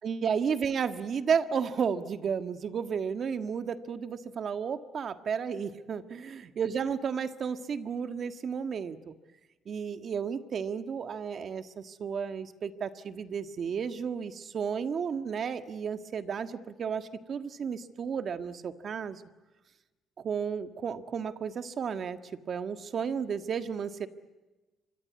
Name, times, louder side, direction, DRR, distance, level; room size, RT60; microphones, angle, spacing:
voice 1, 0.0-9.1 9.6-19.2 20.2-22.2 22.5-24.1, right 6 dB, 55° right, 9 dB, 1.6 m, -33 dB
25.5 x 23.0 x 9.5 m, 1.2 s
cardioid pair, 90°, 0 cm